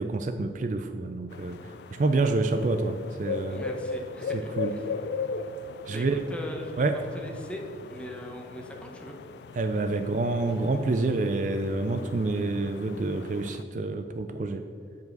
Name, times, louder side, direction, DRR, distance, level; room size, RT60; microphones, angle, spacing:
voice 1, 0.0-3.6 4.3-4.7 5.9-6.2 6.8-7.0 9.6-14.6, right 3 dB, 45° right, 8 dB, 0.4 m, -28 dB
Urban owl hoot, 1.3-13.6, left 4 dB, 65° left, 0.3 m, -38 dB
voice 2, 3.5-4.8 5.9-6.8 7.1-7.6 7.9-9.1, equal, 5° left, 1 dB, 0.8 m, -40 dB
8.1 x 4.7 x 6.5 m, 2.5 s
head